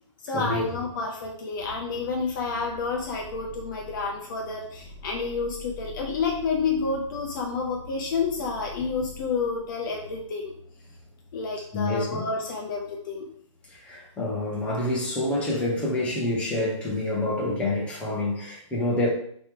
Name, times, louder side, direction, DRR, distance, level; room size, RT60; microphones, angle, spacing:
voice 1, 0.2-10.5 11.3-13.3, left 4 dB, 40° left, 0 dB, 0.7 m, -29 dB
sound 1, 1.6-14.6 14.9-15.5, equal, 10° right, 2.0 m, -46 dB
voice 2, 11.7-12.3 13.8-19.1, left 1 dB, 5° left, -5 dB, 1.0 m, -27 dB
4.4 x 3.1 x 3.6 m, 0.65 s
hypercardioid pair, 150°, 17 cm